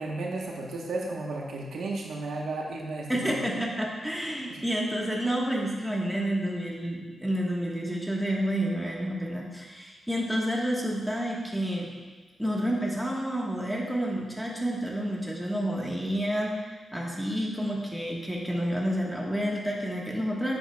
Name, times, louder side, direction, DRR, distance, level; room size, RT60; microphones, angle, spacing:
voice 1, 0.0-3.4 4.5-4.6, right 2 dB, 80° right, -1 dB, 1.0 m, -34 dB
voice 2, 3.1-11.9 12.4-20.6, equal, ahead, -3 dB, 1.3 m, -29 dB
10.5 x 7.7 x 2.3 m, 1.3 s
wide cardioid pair, 130°, 0 cm